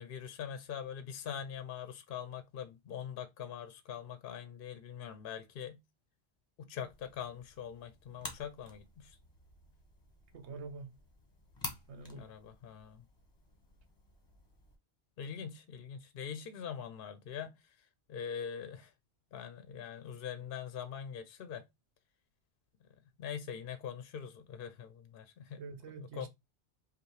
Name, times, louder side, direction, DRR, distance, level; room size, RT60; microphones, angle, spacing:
voice 1, 0.0-5.8 6.6-9.2 12.1-13.0 15.2-18.9 19.3-21.6 23.2-25.6 26.0-26.3, left 8 dB, 60° left, 0.7 m, -43 dB
sound 1, 6.8-14.8, left 2 dB, 25° left, 1.0 m, -50 dB
voice 2, 10.3-11.0 11.9-12.3 25.6-26.3, right 4 dB, 80° right, 1.1 m, -46 dB
5.4 x 2.3 x 3.1 m
omnidirectional pair, 1.1 m